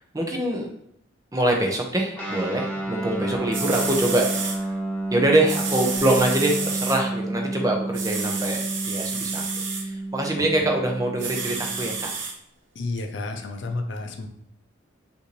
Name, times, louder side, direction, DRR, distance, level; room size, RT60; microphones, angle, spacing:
voice 1, 0.1-0.7 1.3-4.7 5.1-12.1, right 1 dB, 15° right, 1 dB, 0.6 m, -24 dB
Guitar, 2.1-12.1, right 2 dB, 5° left, 0.9 m, -30 dB
sound 1, 3.2-3.3 3.5-4.6 5.5-7.0 7.9-9.8 11.2-12.3 13.0-13.1, right 5 dB, 65° right, 0.7 m, -30 dB
voice 2, 12.8-14.3, left 2 dB, 65° left, 5 dB, 0.5 m, -31 dB
5.4 x 2.6 x 3.1 m, 0.74 s
head